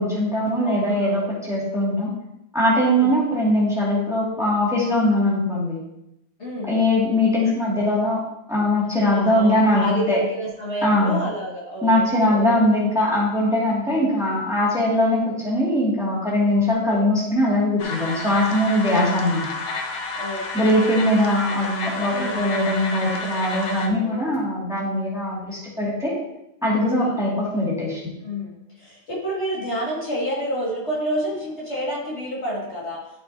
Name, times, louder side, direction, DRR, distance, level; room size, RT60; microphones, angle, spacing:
voice 1, 0.0-2.1 2.5-5.8 6.7-8.2 8.5-10.2 10.8-11.2 11.8-19.5 20.5-26.2 26.6-28.0, left 1 dB, ahead, -6 dB, 2.3 m, -21 dB
voice 2, 0.6-1.4 2.8-3.1 6.4-6.8 9.1-12.6 13.8-14.1 16.4-17.0 18.9-19.1 20.2-20.7 22.1-22.5 23.6-24.3 27.0-27.2 28.2-33.0, equal, 50° left, -6 dB, 2.6 m, -30 dB
sound 1, 17.8-23.9, left 3 dB, 80° left, 1.4 m, -30 dB
11.5 x 6.3 x 2.8 m, 0.85 s
omnidirectional pair, 1.5 m